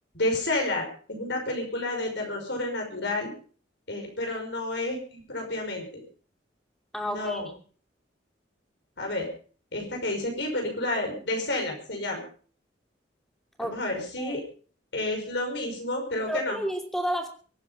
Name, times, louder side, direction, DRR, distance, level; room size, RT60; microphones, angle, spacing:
voice 1, 0.1-3.3 3.9-6.0 7.0-7.5 9.0-9.3 9.7-12.2 13.6-14.4 14.9-16.6, left 2 dB, 65° left, 3 dB, 5.6 m, -30 dB
voice 2, 6.9-7.4 13.6-13.8 14.2-14.4 16.3-17.3, equal, ahead, 3 dB, 2.8 m, -31 dB
23.5 x 9.7 x 5.3 m, 0.42 s
head